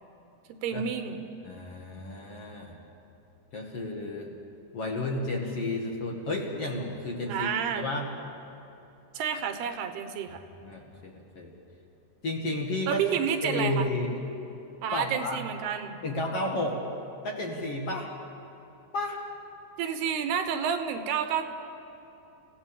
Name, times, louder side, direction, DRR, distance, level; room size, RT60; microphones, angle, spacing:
voice 1, 0.6-1.2 7.3-7.9 9.1-10.4 12.9-13.9 14.8-16.0 19.8-21.5, right 8 dB, 80° right, 8 dB, 3.1 m, -30 dB
voice 2, 1.4-2.8 3.5-4.4 4.7-8.1 10.6-11.5 12.2-13.0 13.4-14.1 14.9-15.5 16.0-16.8 17.2-18.1 18.9-19.2, left 2 dB, 45° left, -1 dB, 2.4 m, -32 dB
29.5 x 17.0 x 7.3 m, 2.9 s
omnidirectional pair, 4.6 m